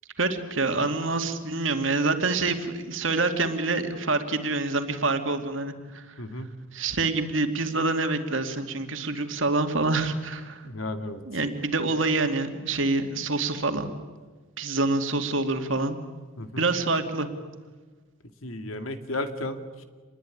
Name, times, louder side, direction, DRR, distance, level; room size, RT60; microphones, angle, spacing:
voice 1, 0.2-6.1 6.7-10.6 11.3-13.9 14.6-16.0 16.6-17.3, right 3 dB, 65° right, 6 dB, 2.5 m, -26 dB
voice 2, 6.2-6.5 10.6-11.2 16.4-16.7 18.4-19.8, left 1 dB, 85° left, 8 dB, 2.3 m, -34 dB
27.5 x 21.0 x 9.9 m, 1.4 s
head